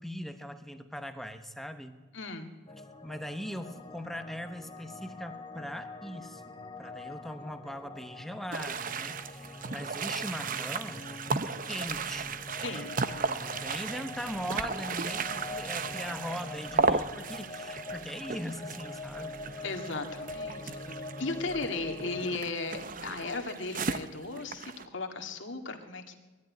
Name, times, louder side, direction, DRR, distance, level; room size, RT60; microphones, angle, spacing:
voice 1, 0.0-2.0 3.0-12.9 13.3-19.7, equal, ahead, 8 dB, 1.0 m, -40 dB
voice 2, 2.1-2.5 12.6-13.2 19.6-26.1, left 3 dB, 60° left, 5 dB, 1.9 m, -36 dB
sound 1, 2.7-22.3, left 2 dB, 25° left, 1.5 m, -44 dB
sound 2, 8.5-24.9, right 4 dB, 40° right, 0.7 m, -35 dB
21.0 x 13.5 x 9.5 m, 1.3 s
head